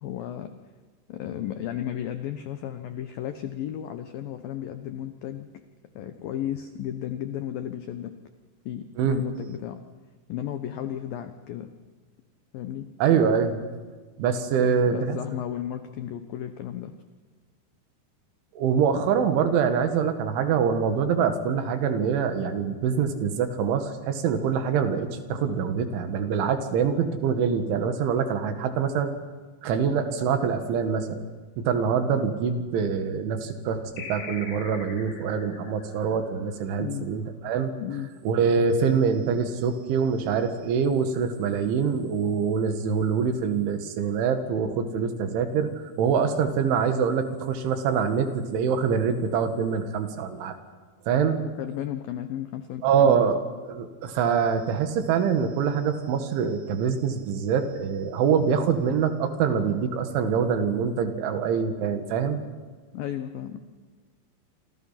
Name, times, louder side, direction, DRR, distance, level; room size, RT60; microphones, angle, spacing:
voice 1, 0.0-0.5 1.1-5.6 6.0-8.2 8.7-9.8 10.3-11.7 12.5-12.9 14.6-16.9 36.8-37.1 37.8-38.1 51.6-53.2 62.9-63.6, left 11 dB, 90° left, 9 dB, 2.0 m, -34 dB
voice 2, 13.0-13.6 14.2-15.2 18.6-29.1 29.6-31.2 31.6-37.7 38.3-45.7 46.0-50.6 51.1-51.4 52.8-53.4 53.7-62.4, right 6 dB, 75° right, 7 dB, 4.2 m, -24 dB
sound 1, 34.0-37.0, left 4 dB, 60° left, 5.6 m, -42 dB
27.5 x 27.0 x 5.8 m, 1.4 s
omnidirectional pair, 5.7 m